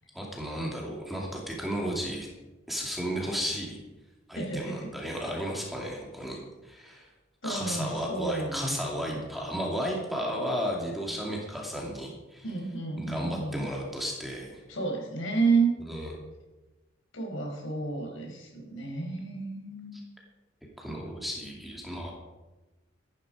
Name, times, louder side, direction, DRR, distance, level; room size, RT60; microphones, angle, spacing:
voice 1, 0.1-2.3 2.7-3.8 4.3-7.1 7.4-12.4 13.0-14.6 15.9-16.1 19.9-20.0 20.8-22.1, equal, ahead, -2 dB, 2.6 m, -34 dB
voice 2, 4.3-4.9 7.4-9.2 12.4-13.7 14.7-15.7 17.1-20.0, right 4 dB, 80° left, 0 dB, 4.8 m, -31 dB
14.0 x 11.5 x 5.1 m, 1.1 s
head